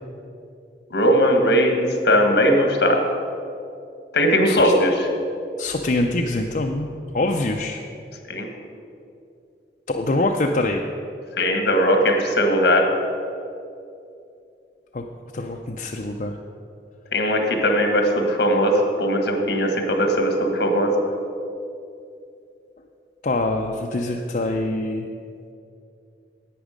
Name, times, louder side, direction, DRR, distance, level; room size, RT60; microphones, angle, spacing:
voice 1, 0.9-3.0 4.1-5.1 8.3-8.5 11.4-12.9 17.1-20.9, equal, 75° left, 3 dB, 1.5 m, -19 dB
voice 2, 5.6-6.9 7.1-7.8 9.9-10.8 14.9-15.0 15.3-16.4 23.2-25.1, left 2 dB, 45° left, 2 dB, 0.5 m, -24 dB
11.5 x 8.1 x 5.1 m, 2.6 s
head